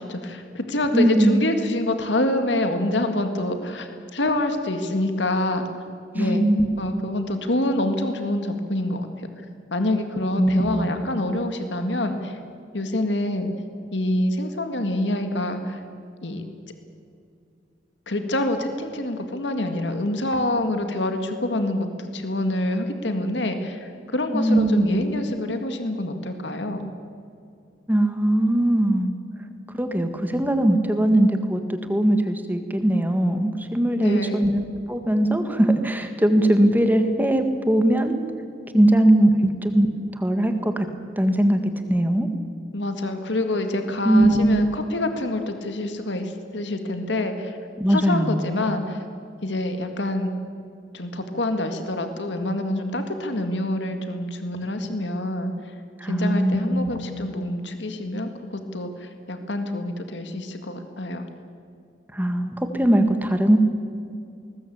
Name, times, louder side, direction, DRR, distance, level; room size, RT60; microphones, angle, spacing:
voice 1, 0.0-5.7 6.1-6.4 6.8-9.3 9.7-12.4 12.7-13.5 13.9-15.8 16.2-16.5 18.1-26.9 33.9-34.5 42.7-47.6 47.9-49.0 49.4-50.3 50.9-55.7 56.0-61.2, left 1 dB, 90° left, 6 dB, 2.0 m, -26 dB
voice 2, 0.9-1.5 6.1-6.7 10.4-10.9 24.3-25.1 27.9-29.2 29.8-38.2 38.7-39.9 40.2-40.9 41.2-42.3 44.0-44.6 47.8-48.4 56.0-57.0 62.1-63.6, right 1 dB, 10° right, 7 dB, 1.6 m, -20 dB
20.5 x 19.5 x 8.7 m, 2.4 s
head